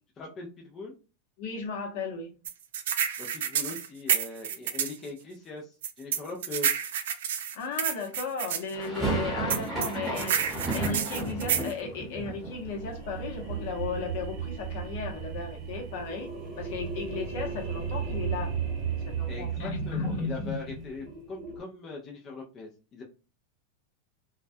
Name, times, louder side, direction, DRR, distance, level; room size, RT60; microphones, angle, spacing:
voice 1, 0.2-0.9 3.2-6.7 19.3-23.0, left 3 dB, 25° left, 0 dB, 0.4 m, -41 dB
voice 2, 1.4-2.3 7.5-16.3 16.6-18.5 18.9-20.9, left 4 dB, 60° left, 2 dB, 0.8 m, -35 dB
sound 1, 2.5-5.0 5.8-8.6 9.5-11.7, right 8 dB, 75° right, 0.4 m, -29 dB
sound 2, 8.7-14.7 14.9-15.8 16.0-16.1 16.4-18.6, right 2 dB, ahead, 1.1 m, -35 dB
sound 3, 12.2-21.6, right 7 dB, 35° right, 0.7 m, -35 dB
2.2 x 2.1 x 2.6 m, 0.34 s
supercardioid pair, 150°, 0 cm